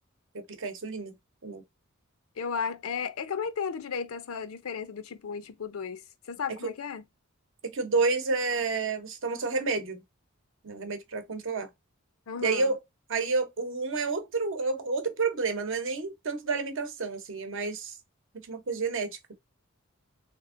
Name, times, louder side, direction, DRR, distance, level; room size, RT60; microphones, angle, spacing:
voice 1, 0.3-1.1 1.4-1.6 6.6-6.7 7.6-10.0 10.6-11.7 12.4-12.8 13.1-18.0 18.5-19.2, right 4 dB, 65° right, 0.8 m, -30 dB
voice 2, 2.4-6.0 6.3-7.0 12.3-12.7, left 6 dB, 80° left, 0.5 m, -34 dB
3.5 x 2.9 x 2.5 m
head